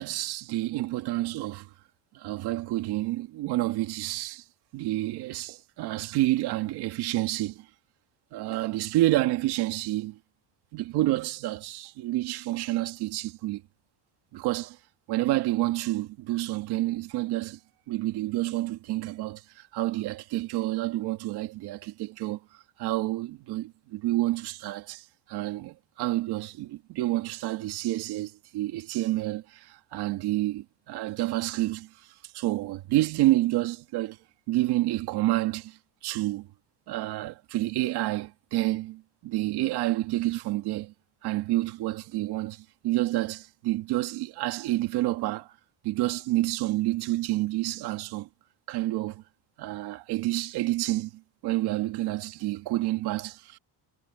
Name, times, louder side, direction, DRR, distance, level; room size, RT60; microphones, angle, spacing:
voice 1, 0.0-1.7 2.1-4.4 4.7-7.7 8.3-10.2 10.7-13.6 14.3-14.8 15.1-17.6 17.9-22.4 22.8-32.1 32.3-34.2 34.5-35.8 36.0-36.5 36.9-40.9 41.2-45.5 45.8-48.3 48.7-49.2 49.6-53.6, right 17 dB, 65° right, 2.2 m, -29 dB
cardioid pair, 170°, 41 cm